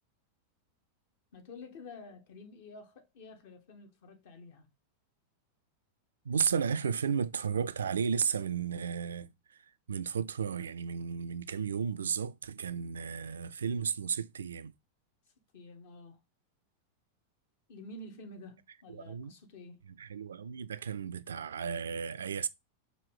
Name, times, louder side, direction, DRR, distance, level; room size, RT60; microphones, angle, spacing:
voice 1, 1.3-4.7 15.5-16.2 17.7-19.9, left 2 dB, 50° left, 1.0 m, -50 dB
voice 2, 6.3-9.6 9.9-14.7 18.9-19.3 20.0-22.5, right 6 dB, 70° right, 0.3 m, -33 dB
5.3 x 2.6 x 3.3 m
figure-of-eight pair, 90°, 0 cm